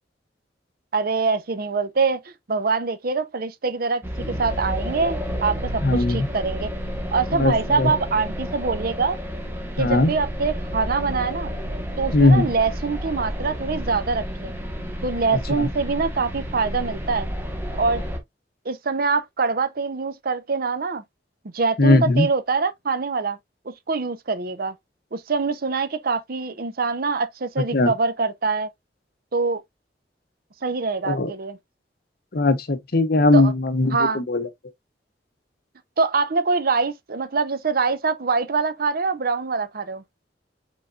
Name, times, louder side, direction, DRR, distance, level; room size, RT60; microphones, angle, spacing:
voice 1, 0.9-6.7 7.1-9.2 9.8-11.5 12.0-14.6 15.0-17.3 17.8-18.0 18.6-21.0 21.5-23.4 23.7-24.8 25.1-28.7 29.3-29.6 30.6-31.6 33.3-33.5 33.9-34.2 36.0-40.0, right 4 dB, 55° right, 0.7 m, -24 dB
sound 1, 4.0-18.2, equal, 15° right, 1.2 m, -31 dB
voice 2, 5.8-6.3 7.3-7.9 9.8-10.1 12.1-12.5 15.3-15.7 21.8-22.3 27.7-27.9 31.0-31.3 32.3-34.5, left 2 dB, 60° left, 0.8 m, -19 dB
5.0 x 3.9 x 2.3 m
head